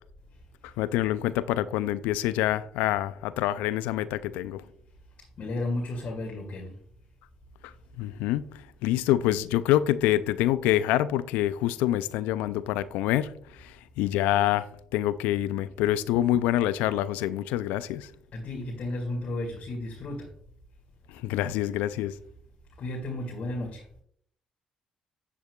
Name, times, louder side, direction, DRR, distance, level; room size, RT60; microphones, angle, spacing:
voice 1, 0.6-4.6 7.6-7.7 8.0-8.5 8.8-13.3 13.6-14.7 14.9-18.1 21.1-22.1, left 13 dB, 75° left, 0.4 m, -26 dB
voice 2, 5.4-6.7 18.3-20.3 22.8-23.8, left 2 dB, 55° left, 2.1 m, -33 dB
10.5 x 7.5 x 2.4 m
hypercardioid pair, 50°, 3 cm